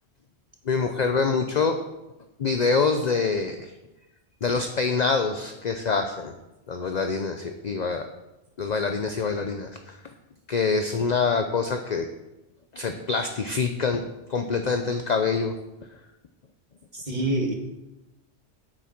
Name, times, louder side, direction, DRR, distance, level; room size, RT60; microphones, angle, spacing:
voice 1, 0.7-1.8 2.4-3.7 4.4-6.3 6.7-8.1 8.6-10.0 10.5-12.1 12.7-14.0 14.3-15.5, left 4 dB, 45° left, 6 dB, 0.7 m, -25 dB
voice 2, 16.9-17.5, right 1 dB, 40° right, 1 dB, 2.1 m, -26 dB
9.1 x 8.1 x 5.9 m, 0.99 s
omnidirectional pair, 1.1 m